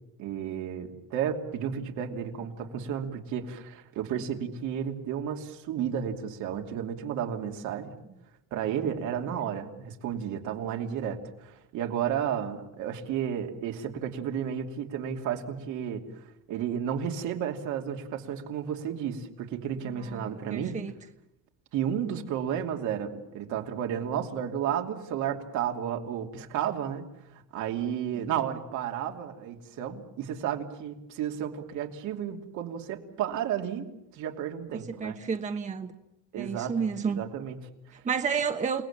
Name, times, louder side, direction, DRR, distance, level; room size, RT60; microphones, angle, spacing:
voice 1, 0.2-8.0 8.5-16.0 16.5-20.8 21.7-27.1 27.3-35.2 36.3-38.0, right 9 dB, 80° right, 3 dB, 2.8 m, -32 dB
voice 2, 20.0-20.9 34.7-35.9 36.4-37.2 37.9-38.8, right 6 dB, 25° right, 6 dB, 1.1 m, -31 dB
29.0 x 19.0 x 7.4 m, 0.88 s
cardioid pair, 150°, 30 cm